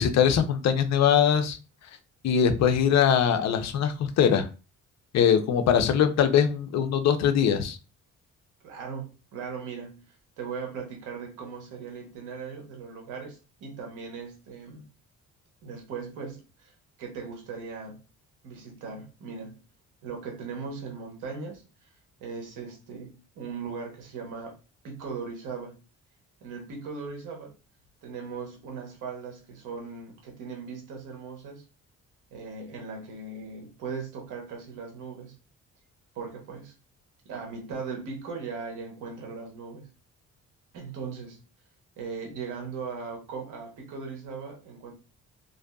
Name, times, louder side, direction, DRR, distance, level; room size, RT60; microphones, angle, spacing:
voice 1, 0.0-1.6 2.2-4.5 5.1-7.8, left 8 dB, 60° left, 8 dB, 0.5 m, -22 dB
voice 2, 8.6-14.8 15.6-16.7 17.0-18.0 18.4-19.6 20.0-21.9 22.2-24.6 24.8-25.8 26.4-27.5 28.0-31.6 32.3-35.3 36.1-36.7 37.2-39.9 40.7-41.4 42.0-44.9, right 5 dB, 90° right, 1 dB, 1.0 m, -38 dB
2.6 x 2.4 x 2.2 m, 0.32 s
cardioid pair, 90°, 30 cm